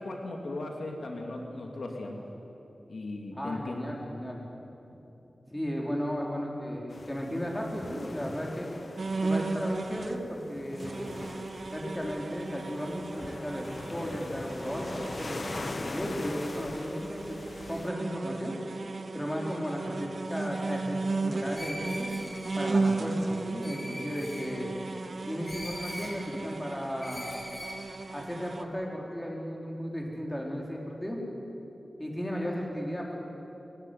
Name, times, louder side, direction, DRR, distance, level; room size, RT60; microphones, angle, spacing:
voice 1, 0.0-2.3 2.9-3.8, left 2 dB, 75° left, 1 dB, 2.8 m, -37 dB
voice 2, 3.3-4.4 5.5-8.7 9.2-11.2 11.7-15.4 15.9-17.4 17.7-18.5 19.1-22.1 22.6-24.7 25.2-27.4 28.1-31.2 32.0-33.2, equal, 10° left, -1 dB, 4.4 m, -35 dB
sound 1, 6.9-17.9, left 3 dB, 45° left, 0.7 m, -42 dB
sound 2, 9.0-10.2 10.7-28.6, right 3 dB, 60° right, 1.3 m, -35 dB
Screech, 21.5-22.6 23.6-24.5 25.4-26.1 27.0-27.8, equal, 30° left, 7.9 m, -41 dB
22.0 x 19.5 x 9.5 m, 3.0 s
wide cardioid pair, 100°, 0 cm